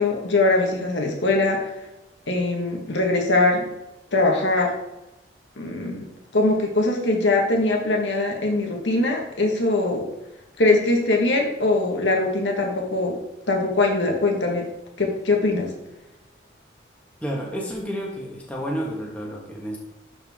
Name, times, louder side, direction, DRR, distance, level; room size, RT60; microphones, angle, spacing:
voice 1, 0.0-1.7 2.3-3.6 4.1-4.7 5.6-6.1 6.3-10.0 10.6-13.1 13.5-14.7 15.0-15.7, left 2 dB, 75° left, 1 dB, 1.6 m, -21 dB
voice 2, 17.2-19.8, equal, 5° left, -2 dB, 1.5 m, -30 dB
11.5 x 4.5 x 3.7 m, 0.93 s
head